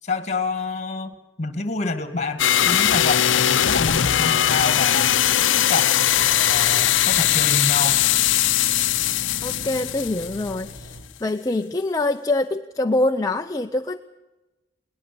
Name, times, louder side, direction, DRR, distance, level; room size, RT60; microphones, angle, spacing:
voice 1, 0.0-5.2 5.6-8.0, left 3 dB, 40° left, 10 dB, 2.0 m, -28 dB
sound 1, 2.4-10.7, left 11 dB, 90° left, 0.6 m, -20 dB
sound 2, 5.4-10.1, right 1 dB, 65° right, 2.0 m, -40 dB
sound 3, 6.0-11.0, right 1 dB, 50° right, 5.0 m, -42 dB
voice 2, 9.4-14.0, left 2 dB, 20° left, 4 dB, 0.6 m, -25 dB
21.5 x 19.0 x 6.9 m, 1.1 s
head